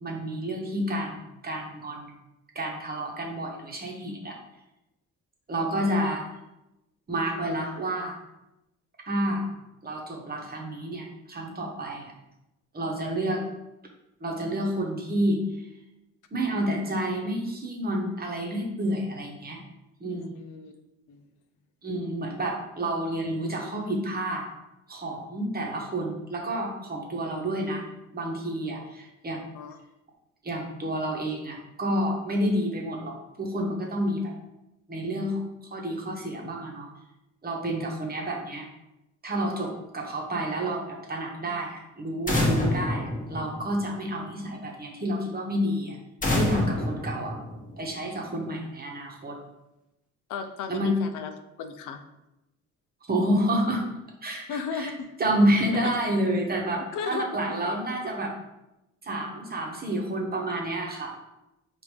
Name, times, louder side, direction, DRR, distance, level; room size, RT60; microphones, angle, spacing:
voice 1, 0.0-2.1 2.5-4.4 5.5-6.3 7.1-8.2 9.1-9.5 9.8-12.1 12.7-13.4 14.2-15.4 16.3-19.6 20.0-20.4 21.8-24.4 24.9-27.8 28.1-29.4 30.4-34.3 34.9-35.4 35.7-36.9 37.4-38.7 39.2-46.0 46.3-47.4 47.8-49.4 50.7-50.9 53.1-53.8 54.2-54.9 55.2-58.3 59.0-61.1, right 1 dB, 30° right, 0 dB, 1.0 m, -29 dB
voice 2, 20.1-20.7 21.1-21.2 29.5-29.8 50.3-51.3 51.6-52.0 54.5-55.1 56.9-57.2, left 6 dB, 85° left, 8 dB, 0.5 m, -35 dB
sound 1, 42.3-44.1 46.2-48.0, left 1 dB, 25° left, 1.0 m, -27 dB
4.9 x 2.6 x 3.3 m, 0.93 s
cardioid pair, 90°, 30 cm